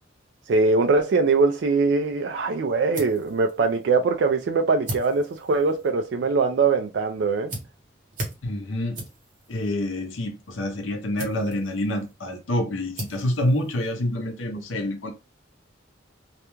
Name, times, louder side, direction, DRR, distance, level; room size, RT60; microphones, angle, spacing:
voice 1, 0.5-7.5, right 4 dB, 60° right, 0.3 m, -22 dB
sound 1, 2.4-14.5, right 1 dB, 40° right, 0.9 m, -41 dB
voice 2, 8.4-9.0 9.5-15.1, left 1 dB, 80° left, 0.6 m, -27 dB
2.4 x 2.2 x 3.0 m
head